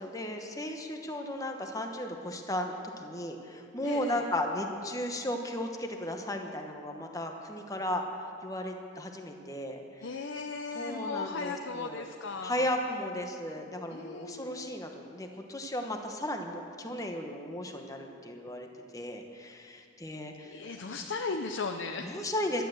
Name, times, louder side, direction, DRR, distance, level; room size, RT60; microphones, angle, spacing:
voice 1, 0.0-8.0 8.4-10.0 10.7-12.1 12.4-20.7 22.0-22.7, left 1 dB, 15° left, 3 dB, 1.1 m, -35 dB
voice 2, 3.8-4.2 10.0-12.7 13.9-14.7 20.4-22.2, left 4 dB, 75° left, 4 dB, 0.7 m, -37 dB
12.0 x 11.5 x 7.7 m, 2.4 s
head